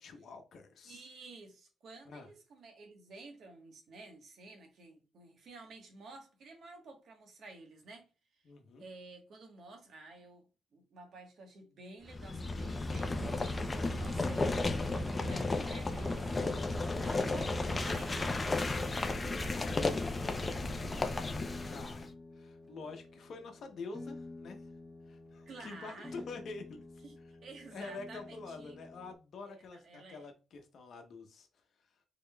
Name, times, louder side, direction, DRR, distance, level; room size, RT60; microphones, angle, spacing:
voice 1, 0.0-1.1 2.0-2.3 8.4-8.8 21.6-24.7 25.1-26.8 27.7-31.5, left 4 dB, 65° left, 0.9 m, -47 dB
voice 2, 0.8-8.1 8.8-10.4 10.7-13.4 13.9-16.4 16.7-20.1 25.5-26.2 27.0-27.1 27.4-28.8 29.5-30.3, right 3 dB, 65° right, 1.2 m, -52 dB
sound 1, 12.1-22.1, left 3 dB, 25° left, 0.5 m, -34 dB
construction Site, 13.1-18.2, right 3 dB, 25° right, 0.6 m, -45 dB
sound 2, 21.4-29.1, left 2 dB, 10° left, 1.3 m, -51 dB
3.6 x 3.5 x 2.2 m
cardioid pair, 75°, 0 cm